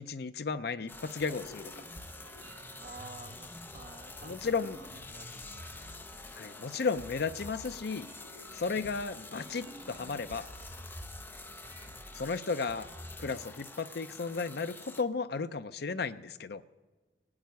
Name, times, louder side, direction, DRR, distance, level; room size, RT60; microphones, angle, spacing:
voice 1, 0.0-1.6 4.2-4.8 6.4-8.1 8.5-10.5 12.1-12.9 13.2-16.6, left 4 dB, 60° left, 12 dB, 0.6 m, -34 dB
sound 1, 0.9-15.0, left 3 dB, 10° left, 0.6 m, -48 dB
sound 2, 0.9-13.3, right 1 dB, 75° right, 4.1 m, -51 dB
voice 2, 2.8-4.5 4.8-6.0, right 3 dB, 45° right, 6 dB, 1.3 m, -51 dB
16.5 x 8.8 x 9.4 m, 1.2 s
head